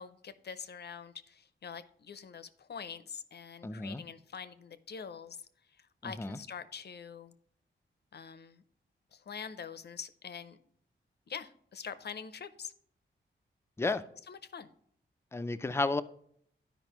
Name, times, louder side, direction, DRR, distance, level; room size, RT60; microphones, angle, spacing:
voice 1, 0.0-5.4 5.8-7.3 8.1-8.6 9.1-10.6 11.3-12.7 13.8-13.9 14.3-14.7, left 6 dB, 55° left, 0.6 m, -45 dB
voice 2, 3.6-4.0 6.0-6.4 13.8-14.0 15.3-16.0, left 3 dB, 15° left, 0.3 m, -32 dB
12.0 x 5.2 x 3.0 m
wide cardioid pair, 150°, 20 cm